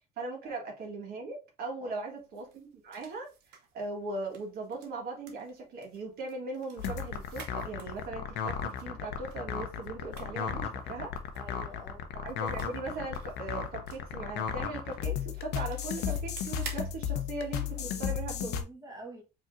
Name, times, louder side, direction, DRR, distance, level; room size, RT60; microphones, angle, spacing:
voice 1, 0.2-3.3 3.7-11.1 12.1-18.5, right 3 dB, 65° right, 1.4 m, -39 dB
sound 1, 2.2-18.3, right 6 dB, 90° right, 0.9 m, -53 dB
sound 2, 6.8-18.6, left 8 dB, 90° left, 0.6 m, -35 dB
voice 2, 11.3-12.1 17.8-19.2, right 1 dB, 20° right, 1.1 m, -48 dB
4.8 x 2.9 x 2.5 m
cardioid pair, 110°, 17 cm